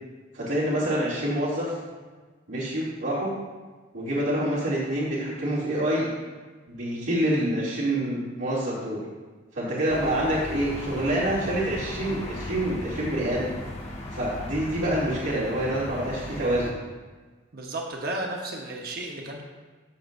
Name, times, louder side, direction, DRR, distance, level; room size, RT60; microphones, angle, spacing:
voice 1, 0.3-1.7 2.5-3.3 3.9-6.1 6.7-9.0 9.5-13.5 14.1-16.8, right 1 dB, 90° right, -11 dB, 2.5 m, -27 dB
sound 1, 9.9-16.7, left 1 dB, 35° left, 1.1 m, -37 dB
voice 2, 17.5-19.4, right 2 dB, 50° right, 0 dB, 0.9 m, -33 dB
13.0 x 6.6 x 2.5 m, 1.4 s
head